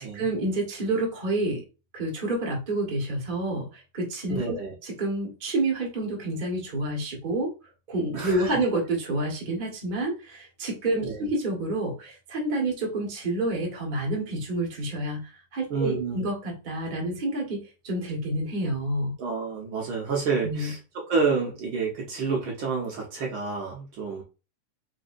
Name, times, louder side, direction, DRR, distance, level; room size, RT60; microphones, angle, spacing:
voice 1, 0.0-1.6 1.9-4.6 4.8-7.5 7.9-19.2 20.4-20.7, right 2 dB, 85° right, -1 dB, 0.4 m, -29 dB
voice 2, 4.3-4.7 8.1-8.5 11.0-11.3 15.7-16.2 19.2-20.8 21.1-24.2, right 4 dB, 60° right, -1 dB, 1.4 m, -29 dB
4.5 x 4.2 x 2.6 m, 0.31 s
omnidirectional pair, 3.6 m